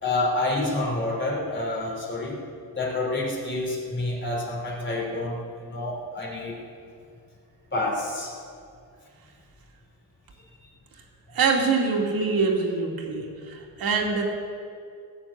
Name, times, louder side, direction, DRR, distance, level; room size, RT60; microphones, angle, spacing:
voice 1, 0.0-2.4 2.7-6.6 7.7-8.4, left 2 dB, 30° left, -1 dB, 3.4 m, -28 dB
voice 2, 11.3-13.2 13.8-14.2, right 4 dB, 80° right, 1 dB, 2.5 m, -23 dB
18.0 x 7.1 x 8.6 m, 2.3 s
wide cardioid pair, 135°, 36 cm